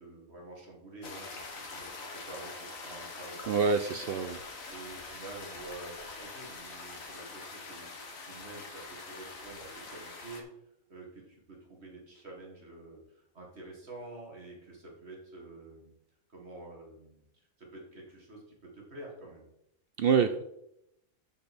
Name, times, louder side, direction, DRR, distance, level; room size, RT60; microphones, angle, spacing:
voice 1, 0.0-3.6 3.9-4.0 4.7-10.5 10.9-15.9 16.3-19.4, right 2 dB, 50° right, -2 dB, 2.3 m, -48 dB
sound 1, 1.0-10.4, left 3 dB, 70° left, 1.7 m, -44 dB
voice 2, 3.5-4.4 20.0-20.4, right 6 dB, 70° right, 9 dB, 0.5 m, -26 dB
12.0 x 5.1 x 4.3 m, 0.81 s
omnidirectional pair, 1.5 m